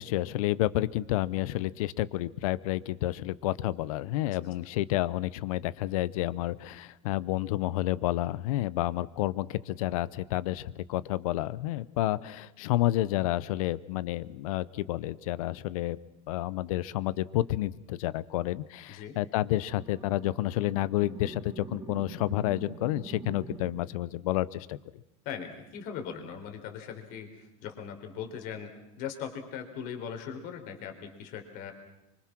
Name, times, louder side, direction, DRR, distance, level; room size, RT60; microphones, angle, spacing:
voice 1, 0.0-16.0 16.3-24.8, left 15 dB, 80° left, 19 dB, 0.9 m, -30 dB
sound 1, 19.6-24.0, right 4 dB, 20° right, 2.3 m, -45 dB
voice 2, 25.2-28.7 29.0-31.7, left 7 dB, 55° left, 6 dB, 3.9 m, -39 dB
25.5 x 24.5 x 6.1 m, 0.91 s
supercardioid pair, 140°, 18 cm